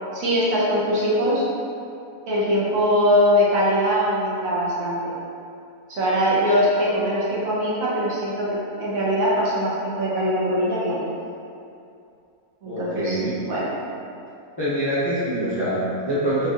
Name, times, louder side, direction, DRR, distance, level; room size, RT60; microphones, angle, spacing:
voice 1, 0.1-1.4 2.3-5.1 5.9-11.0 12.6-13.7, equal, 70° right, -7 dB, 1.2 m, -22 dB
voice 2, 12.6-13.3 14.6-16.5, right 1 dB, 35° left, -12 dB, 0.4 m, -25 dB
4.5 x 2.6 x 2.5 m, 2.6 s
omnidirectional pair, 1.5 m